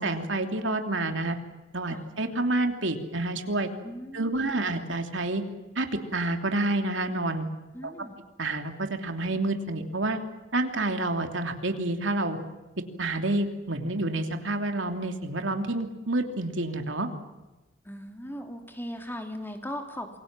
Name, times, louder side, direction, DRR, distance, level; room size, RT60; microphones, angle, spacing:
voice 1, 0.0-1.4 1.7-3.7 4.1-5.4 5.7-5.9 6.1-7.5 8.4-10.2 10.5-12.4 13.0-17.1, right 2 dB, 70° right, 5 dB, 3.0 m, -28 dB
voice 2, 3.8-4.6 7.7-8.2 17.8-20.2, equal, 10° left, 4 dB, 3.1 m, -38 dB
28.5 x 23.0 x 7.6 m, 1.1 s
head